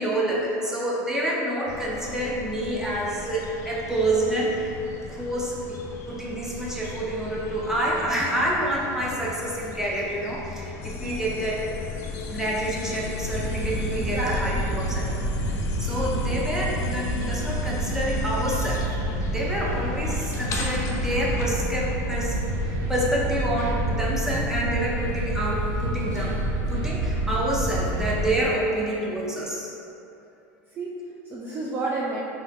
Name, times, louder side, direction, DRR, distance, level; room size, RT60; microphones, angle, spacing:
voice 1, 0.0-5.8 6.1-11.6 12.3-18.8 19.3-29.7, right 1 dB, 5° right, -5 dB, 0.8 m, -28 dB
sound 1, 1.7-21.5, left 3 dB, 35° left, 0.6 m, -38 dB
sound 2, 10.8-18.8, left 6 dB, 80° left, 0.4 m, -37 dB
sound 3, 13.2-28.3, right 1 dB, 55° right, 1.0 m, -28 dB
voice 2, 14.0-14.9 30.8-32.2, right 2 dB, 25° right, -4 dB, 0.5 m, -31 dB
3.8 x 3.1 x 4.2 m, 2.8 s
supercardioid pair, 120°, 8 cm